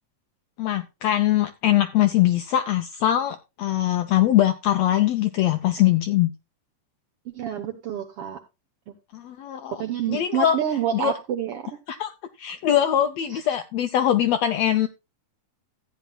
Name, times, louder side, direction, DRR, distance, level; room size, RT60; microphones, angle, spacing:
voice 1, 0.6-6.3 9.1-9.8 10.1-10.6 10.9-11.1 11.9-12.1 12.4-14.9, left 12 dB, 80° left, 1.5 m, -22 dB
voice 2, 7.3-8.4 8.9-9.0 9.7-11.8 13.3-13.4, right 9 dB, 70° right, 1.4 m, -28 dB
14.5 x 9.3 x 2.2 m
omnidirectional pair, 3.7 m